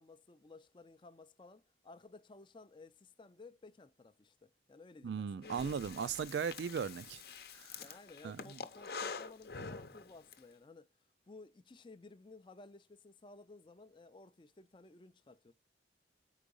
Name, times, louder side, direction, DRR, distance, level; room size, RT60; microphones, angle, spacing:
voice 1, 0.0-5.5 6.0-6.1 7.8-10.9 11.2-15.5, left 3 dB, 25° left, 0.4 m, -56 dB
voice 2, 5.0-7.2 7.5-7.8 8.2-8.6, right 6 dB, 75° right, 0.3 m, -38 dB
Breathing, 5.4-10.4, left 5 dB, 60° left, 0.8 m, -46 dB
4.9 x 4.6 x 5.2 m
head